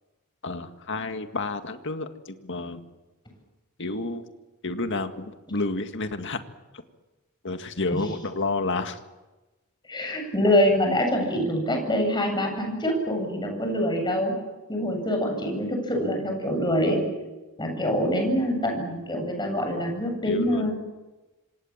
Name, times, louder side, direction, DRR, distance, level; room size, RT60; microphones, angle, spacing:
voice 1, 0.4-2.8 3.8-4.2 4.6-6.4 7.4-9.0 20.2-20.7, left 3 dB, 55° left, 7 dB, 2.0 m, -30 dB
voice 2, 9.9-14.3 14.7-17.0 17.6-20.7, equal, 20° left, 3 dB, 8.0 m, -25 dB
27.0 x 26.0 x 7.4 m, 1.1 s
head